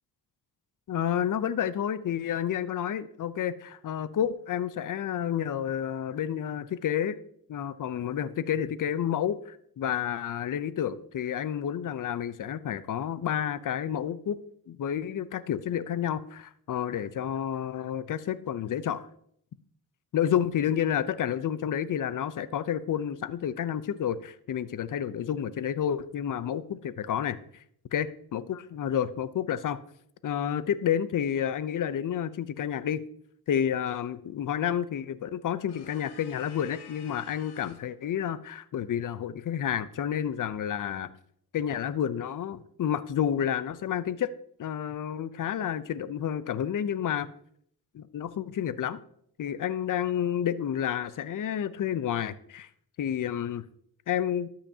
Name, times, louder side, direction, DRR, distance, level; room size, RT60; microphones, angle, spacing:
voice 1, 0.9-7.2 7.5-14.4 14.7-19.1 20.1-27.4 27.9-28.1 28.3-29.8 30.2-33.0 33.5-41.1 41.5-44.3 44.6-47.3 47.9-49.0 49.4-52.7 53.0-53.6 54.1-54.5, left 9 dB, 50° left, 15 dB, 0.7 m, -30 dB
sound 1, 35.7-37.9, left 8 dB, 70° left, 1.2 m, -51 dB
13.0 x 5.8 x 2.8 m, 0.65 s
cardioid pair, 65°, 41 cm